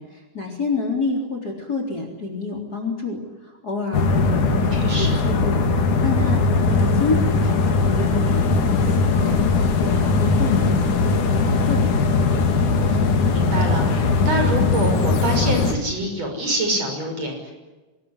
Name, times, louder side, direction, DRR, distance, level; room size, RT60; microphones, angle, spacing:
voice 1, 0.0-9.4 9.8-10.9 11.2-11.9, left 3 dB, 30° left, 3 dB, 4.2 m, -28 dB
sound 1, 3.9-15.7, left 4 dB, 80° left, 3.9 m, -19 dB
voice 2, 4.7-5.2 12.8-17.5, right 1 dB, 55° right, 3 dB, 7.3 m, -26 dB
25.5 x 20.5 x 9.9 m, 1.2 s
omnidirectional pair, 3.5 m